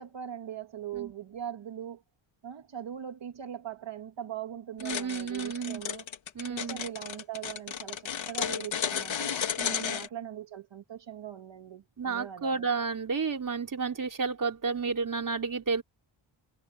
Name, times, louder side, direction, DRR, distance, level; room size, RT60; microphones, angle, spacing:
voice 1, 0.0-2.0 2.4-6.1 6.5-9.3 9.7-12.7, right 10 dB, 65° right, 2.2 m, -41 dB
sound 1, 4.8-10.1, left 8 dB, 70° left, 2.8 m, -33 dB
voice 2, 4.8-5.8 6.4-6.8 9.6-10.0 12.0-15.8, right 5 dB, 40° right, 3.8 m, -31 dB
wide cardioid pair, 115°, 48 cm